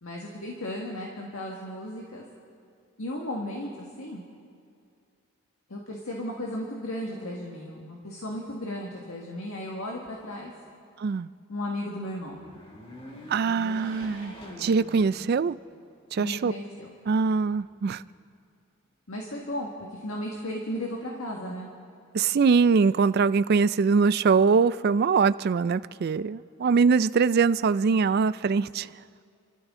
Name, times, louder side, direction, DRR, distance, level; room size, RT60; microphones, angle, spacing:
voice 1, 0.0-2.2 3.0-3.7 4.0-4.2 5.7-10.5 11.5-12.4 16.2-16.9 19.1-21.7, left 1 dB, 75° left, -2 dB, 1.7 m, -35 dB
sound 1, 12.2-15.8 16.3-16.4 17.4-18.2, equal, 25° left, 2.1 m, -44 dB
voice 2, 13.3-14.3 14.6-15.6 16.1-16.5 17.1-18.0 22.1-28.9, right 5 dB, 45° right, 16 dB, 0.3 m, -22 dB
29.5 x 13.0 x 3.7 m, 2.4 s
head